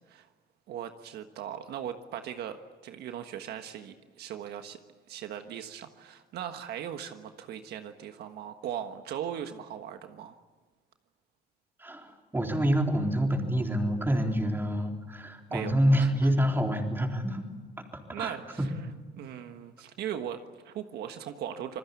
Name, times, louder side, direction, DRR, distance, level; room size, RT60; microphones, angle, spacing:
voice 1, 0.7-2.6 2.8-4.8 5.1-10.4 15.5-16.3 18.1-18.7 19.2-21.8, right 9 dB, 75° right, 7 dB, 1.5 m, -39 dB
voice 2, 11.8-17.4 18.2-18.7, equal, 10° right, 2 dB, 3.8 m, -27 dB
27.0 x 20.5 x 8.4 m, 1.3 s
cardioid pair, 110°, 17 cm